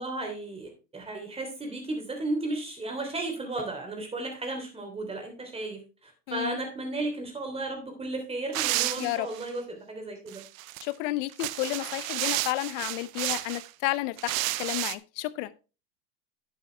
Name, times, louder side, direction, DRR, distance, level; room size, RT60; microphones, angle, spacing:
voice 1, 0.0-10.4, right 2 dB, 10° right, 3.2 m, -34 dB
voice 2, 6.3-6.6 9.0-9.3 10.8-14.3 14.6-15.5, left 17 dB, 50° left, 0.8 m, -31 dB
sound 1, 8.5-9.5 10.3-10.8 11.3-13.7 14.2-15.0, right 18 dB, 55° right, 0.7 m, -31 dB
9.8 x 8.2 x 3.3 m
supercardioid pair, 125°, 48 cm